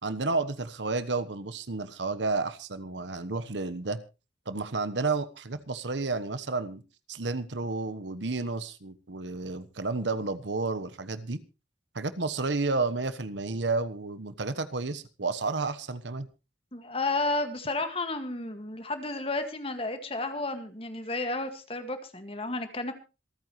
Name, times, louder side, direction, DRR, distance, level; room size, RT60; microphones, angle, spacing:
voice 1, 0.0-4.0 4.5-6.8 7.1-11.4 11.9-16.3, right 3 dB, 80° right, 13 dB, 1.2 m, -31 dB
voice 2, 16.7-22.9, left 2 dB, 30° left, 8 dB, 1.9 m, -32 dB
26.5 x 9.2 x 3.2 m, 0.30 s
head